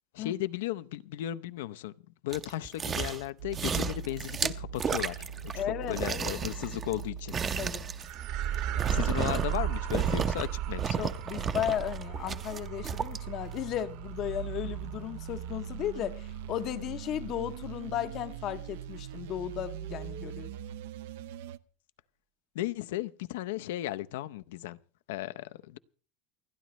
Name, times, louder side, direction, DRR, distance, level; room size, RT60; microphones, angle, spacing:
voice 1, 0.1-1.9 2.2-7.4 8.9-11.1 22.5-24.8 25.1-25.8, left 14 dB, 80° left, 0.6 m, -35 dB
sound 1, 2.3-3.3 3.5-5.6 5.9-9.6 9.9-10.5 10.8-13.2 13.6-13.7, right 6 dB, 20° right, 0.7 m, -33 dB
sound 2, 3.4-8.0 8.9-21.6, right 10 dB, 75° right, 0.7 m, -41 dB
voice 2, 5.5-6.3 7.6-7.9 11.0-20.5, left 11 dB, 35° left, 0.7 m, -35 dB
sound 3, 8.0-16.6, right 10 dB, 50° right, 1.3 m, -36 dB
29.0 x 10.5 x 3.1 m
supercardioid pair, 170°, 0 cm